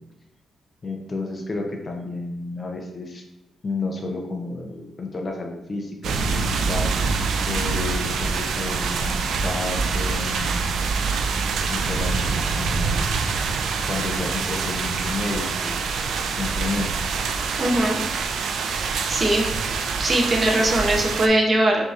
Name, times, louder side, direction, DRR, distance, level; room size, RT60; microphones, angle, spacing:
voice 1, 0.8-3.2 3.6-6.9 7.5-10.7 11.7-13.2 13.8-15.8 16.3-16.9, left 3 dB, 30° left, 2 dB, 0.5 m, -31 dB
sound 1, 6.0-21.3, right 4 dB, 80° right, 0.3 m, -25 dB
voice 2, 17.6-18.0 18.7-19.5 20.0-21.8, right 1 dB, 25° right, 1 dB, 0.6 m, -21 dB
6.1 x 2.7 x 2.4 m, 0.92 s
wide cardioid pair, 170°, 0 cm